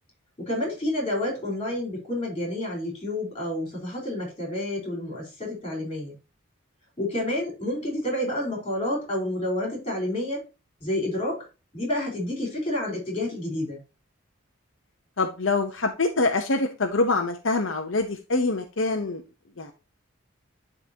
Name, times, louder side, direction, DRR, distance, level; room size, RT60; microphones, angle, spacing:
voice 1, 0.4-6.1 7.0-10.4 10.8-11.5 11.7-13.8, left 1 dB, 25° left, 0 dB, 4.4 m, -29 dB
voice 2, 15.2-19.2 19.6-19.7, left 3 dB, 70° left, 4 dB, 0.9 m, -25 dB
11.5 x 3.9 x 2.9 m, 0.29 s
head